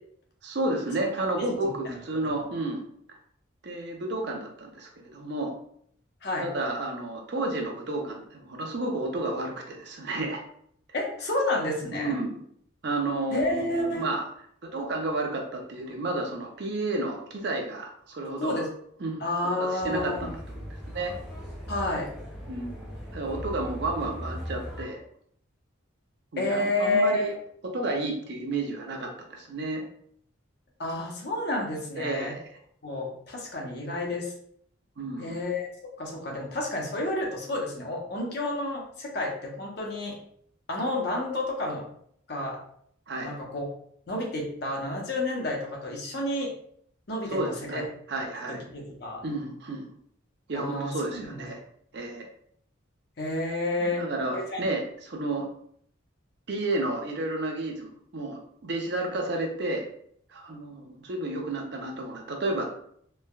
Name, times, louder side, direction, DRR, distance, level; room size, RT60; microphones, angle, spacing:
voice 1, 0.4-2.8 3.1-3.2 3.6-5.5 6.4-10.4 11.9-12.4 12.8-14.2 14.6-18.6 19.0-19.2 19.6-21.2 22.5-25.0 26.3-27.3 27.6-29.8 31.9-32.4 35.0-35.4 43.1-43.3 47.3-48.6 49.2-49.9 50.5-51.6 51.9-52.3 53.9-55.5 56.5-59.8 60.3-62.7, right 2 dB, 55° right, 2 dB, 0.5 m, -31 dB
voice 2, 1.3-2.0 2.2-2.3 6.2-6.5 10.9-12.2 13.3-14.0 18.4-18.7 19.2-20.3 21.7-22.1 26.4-27.3 30.8-32.3 32.8-34.3 35.2-35.7 36.0-40.2 40.7-41.8 42.3-42.6 43.2-43.7 44.1-46.5 47.1-47.4 47.7-47.8 48.5-49.2 50.5-51.4 53.2-54.0 54.3-54.6, left 1 dB, 50° left, -1 dB, 0.7 m, -30 dB
sound 1, 19.8-24.9, equal, 5° right, 0.4 m, -39 dB
3.2 x 2.1 x 2.2 m, 0.66 s
head